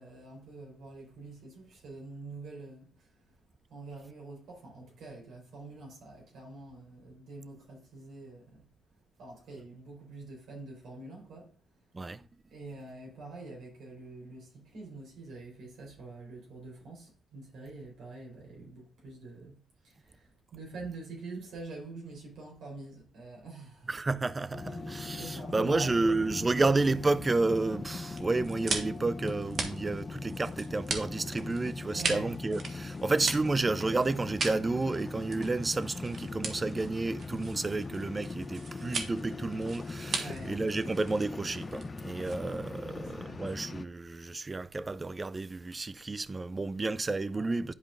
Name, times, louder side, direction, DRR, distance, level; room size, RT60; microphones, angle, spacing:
voice 1, 0.0-3.1 3.7-8.7 9.2-11.5 12.5-19.6 19.8-23.9 24.5-26.1 31.9-32.3 40.1-40.6 42.8-43.4 47.3-47.5, right 3 dB, 75° right, 3.9 m, -46 dB
voice 2, 11.9-12.3 23.9-47.7, right 3 dB, 25° right, 0.4 m, -31 dB
sound 1, 24.5-43.8, left 3 dB, 30° left, 0.5 m, -40 dB
sound 2, 28.1-42.8, right 4 dB, 50° right, 1.4 m, -39 dB
11.0 x 5.0 x 2.5 m
cardioid pair, 90°, 0 cm